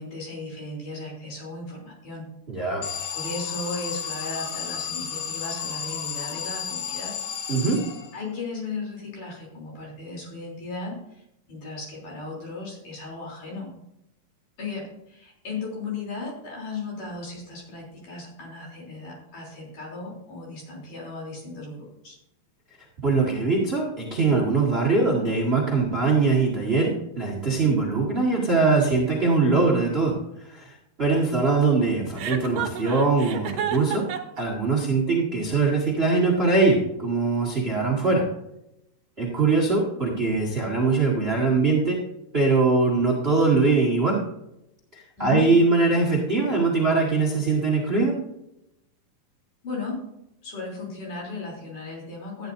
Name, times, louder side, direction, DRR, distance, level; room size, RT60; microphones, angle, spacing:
voice 1, 0.0-2.2 3.1-7.2 8.1-13.7 14.6-22.1 45.2-45.5 49.6-50.0 50.4-52.5, left 3 dB, 60° left, -3 dB, 5.0 m, -36 dB
voice 2, 2.5-2.8 7.5-7.8 23.0-34.0 34.4-38.2 39.2-42.0 42.3-44.2 44.9-48.2, right 3 dB, 25° right, -3 dB, 1.6 m, -22 dB
Alarm, 2.8-8.4, left 8 dB, 85° left, 2.8 m, -32 dB
Chuckle chortle, 32.2-34.4, right 9 dB, 70° right, 2.6 m, -30 dB
13.5 x 9.8 x 2.7 m, 0.85 s
omnidirectional pair, 4.1 m